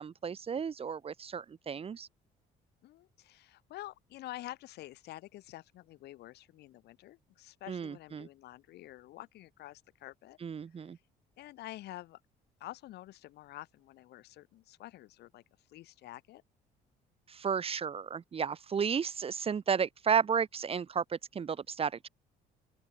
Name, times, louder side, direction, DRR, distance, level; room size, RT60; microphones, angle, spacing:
voice 1, 0.0-2.1 7.7-8.3 10.4-11.0 17.3-22.1, right 6 dB, 35° right, 1.6 m, -33 dB
voice 2, 2.8-10.4 11.4-12.2 12.6-15.4 15.7-16.4, left 15 dB, 75° left, 6.8 m, -48 dB
open air
cardioid pair, 110°, 17 cm